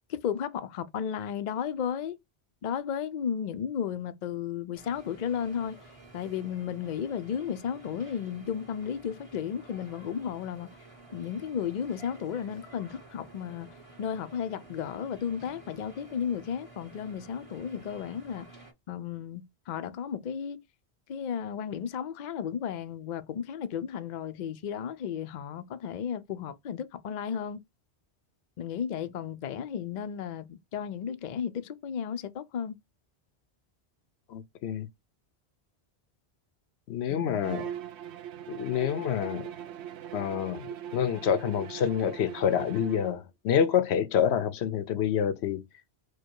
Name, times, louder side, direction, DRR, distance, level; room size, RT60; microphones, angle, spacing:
voice 1, 0.1-2.2 2.6-5.8 6.1-10.7 11.1-13.7 14.0-18.5 18.9-20.6 21.1-27.6 28.6-32.8 37.1-37.4, left 8 dB, 55° left, 0.6 m, -34 dB
sound 1, 4.7-18.7, right 2 dB, 30° right, 1.6 m, -51 dB
voice 2, 34.3-34.9 36.9-37.7 38.5-39.5 40.1-45.6, left 8 dB, 80° left, 0.9 m, -27 dB
Bowed string instrument, 37.4-43.2, right 10 dB, 90° right, 0.8 m, -40 dB
4.6 x 2.2 x 4.5 m
omnidirectional pair, 1.1 m